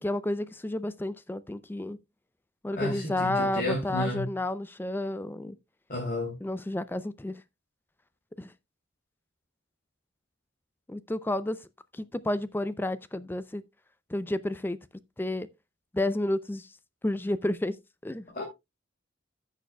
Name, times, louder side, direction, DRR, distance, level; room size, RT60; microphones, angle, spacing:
voice 1, 0.0-2.0 2.6-5.6 6.4-7.4 8.4-8.5 10.9-11.6 11.9-13.6 14.1-14.8 15.2-15.5 15.9-16.7 17.0-17.8 18.0-18.2, left 1 dB, 10° left, 0.4 m, -31 dB
voice 2, 2.7-4.3 5.9-6.4 18.3-18.4, left 1 dB, 45° left, 2.4 m, -32 dB
15.0 x 6.6 x 2.2 m
head